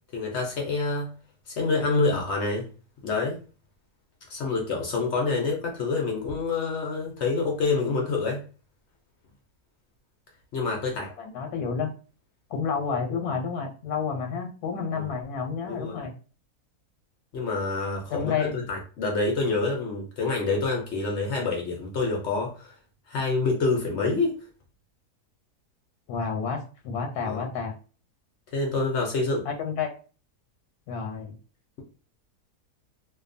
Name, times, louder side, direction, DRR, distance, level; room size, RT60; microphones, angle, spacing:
voice 1, 0.1-1.1 1.5-2.7 3.0-3.4 4.3-8.4 10.5-11.1 14.9-15.1 15.6-16.0 17.3-22.7 23.1-24.3 27.2-27.5 28.5-29.4, left 3 dB, 65° left, 0 dB, 0.7 m, -27 dB
voice 2, 11.2-11.9 12.5-16.1 18.1-18.5 26.1-27.7 29.4-29.9 30.9-31.3, left 6 dB, 90° left, 3 dB, 1.1 m, -30 dB
2.6 x 2.2 x 2.5 m, 0.37 s
omnidirectional pair, 1.6 m